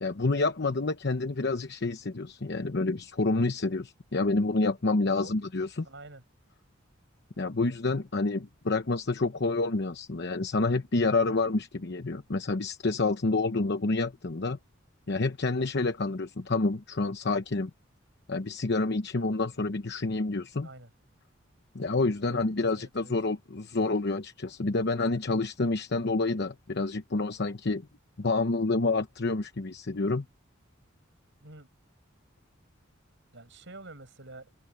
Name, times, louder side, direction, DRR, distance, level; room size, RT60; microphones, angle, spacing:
voice 1, 0.0-5.9 7.4-14.6 15.1-17.7 18.3-20.7 21.7-27.8 28.2-30.2, left 3 dB, 55° left, 0.9 m, -28 dB
voice 2, 5.8-6.2 20.6-20.9 22.3-22.5 22.7-23.1 31.4-31.7 33.3-34.5, right 2 dB, 60° right, 8.0 m, -47 dB
open air
head